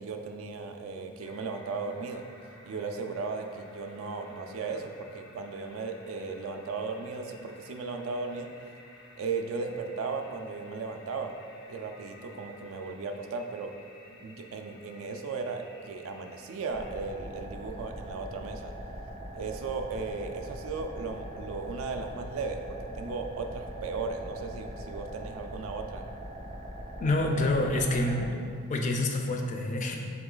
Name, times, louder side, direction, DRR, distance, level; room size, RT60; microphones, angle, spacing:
voice 1, 0.0-2.2 2.7-8.5 9.1-11.3 11.7-13.7 14.1-18.7 19.3-26.0, right 4 dB, 75° right, 5 dB, 0.3 m, -36 dB
sound 1, 1.2-17.0, left 1 dB, 80° left, 0.8 m, -54 dB
sound 2, 16.7-28.3, right 1 dB, 30° right, 0.6 m, -42 dB
voice 2, 27.0-28.4 28.7-30.0, left 2 dB, 35° left, 3 dB, 0.3 m, -27 dB
3.7 x 3.0 x 3.8 m, 2.3 s
head